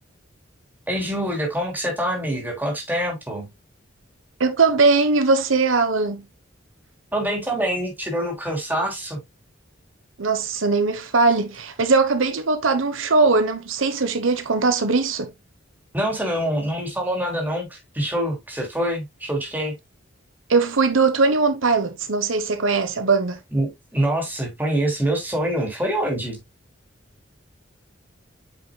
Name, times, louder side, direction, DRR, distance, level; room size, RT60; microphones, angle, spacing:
voice 1, 0.9-3.5 7.1-9.2 15.9-19.7 23.5-26.4, right 1 dB, 10° right, 3.1 m, -25 dB
voice 2, 4.4-6.2 10.2-15.3 20.5-23.4, right 4 dB, 85° right, 1.1 m, -20 dB
8.7 x 5.8 x 2.3 m
head